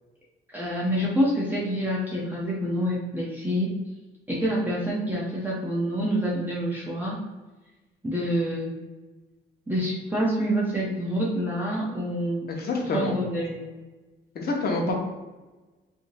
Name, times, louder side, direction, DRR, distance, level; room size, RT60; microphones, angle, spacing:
voice 1, 0.5-3.8 4.3-7.2 8.0-8.7 9.7-12.5 12.9-13.6 14.8-14.9, equal, 10° right, -6 dB, 0.7 m, -27 dB
voice 2, 12.5-13.1 14.3-14.9, left 3 dB, 50° left, 0 dB, 0.8 m, -27 dB
3.6 x 2.6 x 2.6 m, 1.2 s
cardioid pair, 90°, 20 cm